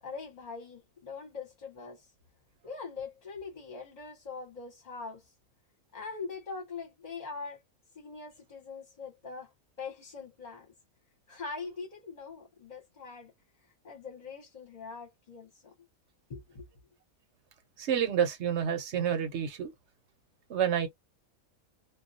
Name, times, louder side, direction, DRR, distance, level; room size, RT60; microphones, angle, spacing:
voice 1, 0.0-2.1 2.6-5.3 5.9-7.6 7.9-10.7 11.3-13.3 13.8-15.7 16.3-16.7, left 4 dB, 35° left, 0.9 m, -42 dB
voice 2, 17.8-19.7 20.5-20.9, right 8 dB, 60° right, 0.9 m, -29 dB
2.3 x 2.3 x 2.6 m
omnidirectional pair, 1.5 m